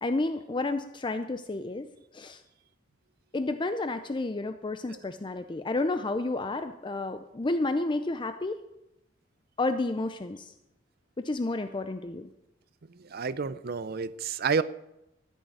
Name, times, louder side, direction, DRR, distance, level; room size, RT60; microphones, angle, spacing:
voice 1, 0.0-2.4 3.3-8.6 9.6-10.5 11.2-12.3, left 2 dB, 25° left, 9 dB, 0.5 m, -31 dB
voice 2, 12.9-14.6, right 5 dB, 55° right, 16 dB, 0.5 m, -30 dB
14.5 x 6.4 x 9.4 m, 0.89 s
head